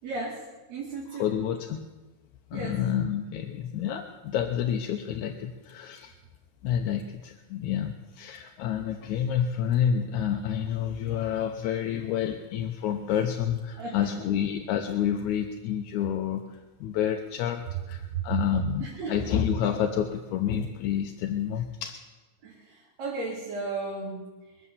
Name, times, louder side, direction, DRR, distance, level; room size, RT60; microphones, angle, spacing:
voice 1, 0.0-0.4 0.7-1.3 2.5-2.8 13.8-14.1 18.1-18.2 18.8-19.3 22.4-24.3, right 3 dB, 65° right, -4 dB, 3.5 m, -35 dB
voice 2, 1.1-1.8 2.5-6.1 6.6-21.9, left 9 dB, 80° left, 4 dB, 2.2 m, -29 dB
23.0 x 8.3 x 7.1 m, 1.2 s
omnidirectional pair, 3.4 m